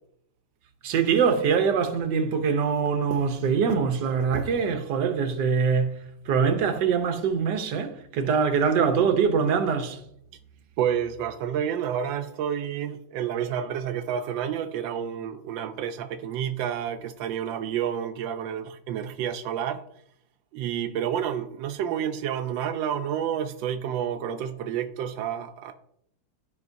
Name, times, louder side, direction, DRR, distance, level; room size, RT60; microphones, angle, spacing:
voice 1, 0.8-6.0 6.3-10.0, right 6 dB, 70° right, 1.5 m, -23 dB
voice 2, 10.8-19.8 20.5-25.7, right 9 dB, 90° right, 1.3 m, -29 dB
13.0 x 5.2 x 2.6 m
omnidirectional pair, 2.0 m